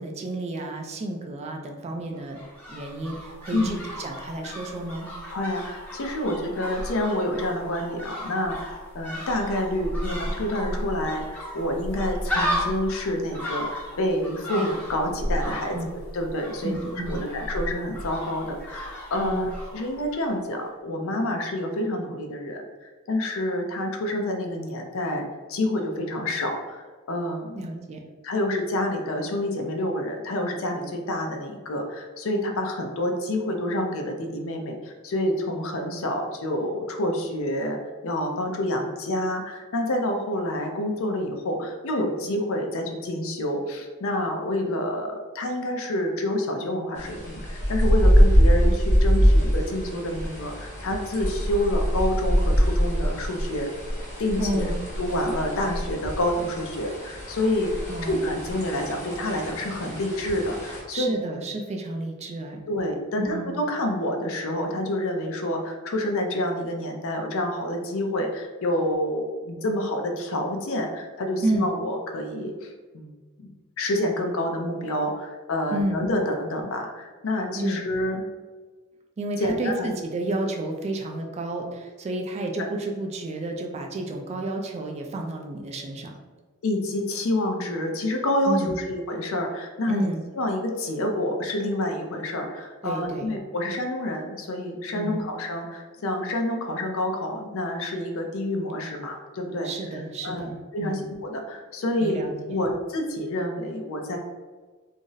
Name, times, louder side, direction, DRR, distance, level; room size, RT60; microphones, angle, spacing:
voice 1, 0.0-2.4 2.7-5.1 15.7-15.9 16.6-17.2 19.2-19.4 27.5-28.0 54.4-54.8 57.9-58.2 60.9-62.6 63.2-63.5 71.4-71.7 75.7-76.1 77.5-77.8 79.2-86.1 88.4-88.8 89.9-90.2 92.8-93.3 94.9-95.2 99.6-100.5 100.8-101.1 102.0-102.6, right 1 dB, 30° right, 3 dB, 0.3 m, -31 dB
sound 1, 2.1-20.3 20.6-20.7, equal, 5° left, 0.7 m, -34 dB
voice 2, 5.3-16.8 17.1-27.8 28.2-53.7 54.2-54.7 55.0-57.7 58.0-61.1 62.7-73.1 73.4-73.5 73.8-78.2 79.4-79.9 82.6-82.7 86.6-90.1 90.4-104.2, left 1 dB, 65° left, 3 dB, 0.5 m, -28 dB
sound 2, 47.0-60.8, equal, 35° left, 1.1 m, -24 dB
2.5 x 2.0 x 3.8 m, 1.4 s
head